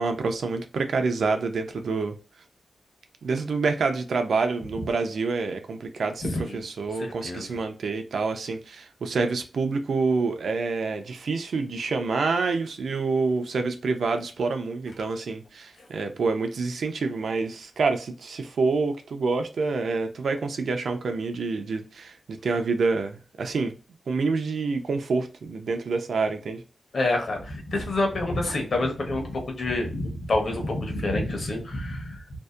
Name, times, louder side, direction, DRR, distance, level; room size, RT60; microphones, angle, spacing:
voice 1, 0.0-2.2 3.2-23.8 24.1-26.6, right 4 dB, 75° right, 0.4 m, -27 dB
voice 2, 6.2-6.6 7.0-7.5 26.9-32.2, left 2 dB, 55° left, 0.7 m, -27 dB
2.6 x 2.1 x 2.2 m
wide cardioid pair, 180°, 0 cm